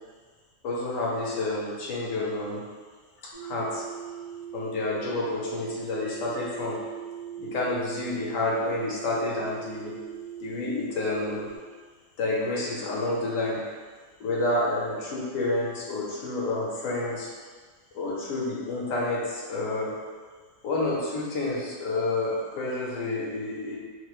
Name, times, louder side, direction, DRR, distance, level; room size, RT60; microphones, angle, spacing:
voice 1, 0.6-2.6 3.2-3.8 4.5-6.8 7.4-9.9 10.4-11.5 12.2-13.6 14.2-17.3 17.9-19.9 20.6-23.8, left 2 dB, 90° left, -4 dB, 1.0 m, -29 dB
sound 1, 3.3-11.6, right 9 dB, 40° right, 0.5 m, -40 dB
2.5 x 2.1 x 2.3 m, 1.5 s
omnidirectional pair, 1.3 m